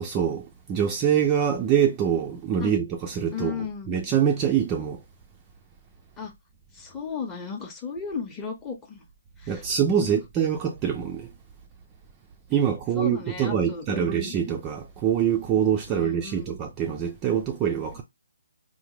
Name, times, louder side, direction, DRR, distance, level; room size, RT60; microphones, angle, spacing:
voice 1, 0.0-3.5 3.9-5.0 9.5-11.3 12.5-18.0, right 8 dB, 20° right, 0.3 m, -24 dB
voice 2, 3.3-3.9 6.2-6.3 6.7-9.1 9.4-9.7 10.0-10.2 12.9-14.3 15.9-16.5, left 5 dB, 15° left, 0.7 m, -35 dB
3.5 x 2.1 x 2.9 m
hypercardioid pair, 160°, 0 cm